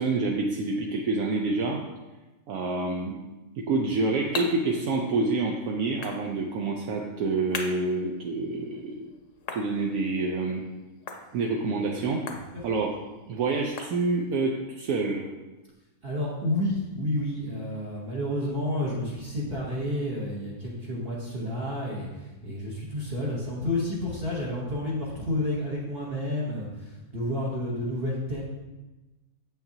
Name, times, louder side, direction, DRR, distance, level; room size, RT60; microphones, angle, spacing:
voice 1, 0.0-1.8 2.5-3.2 3.6-9.1 9.5-10.6 11.3-12.3 12.6-13.0 13.3-15.3 22.4-22.6, right 3 dB, 75° right, 0 dB, 1.0 m, -27 dB
sound 1, 3.6-14.5, left 4 dB, 60° left, 1.0 m, -43 dB
voice 2, 16.0-28.4, left 1 dB, 45° right, -5 dB, 1.1 m, -30 dB
7.2 x 5.8 x 2.7 m, 1.1 s
omnidirectional pair, 1.6 m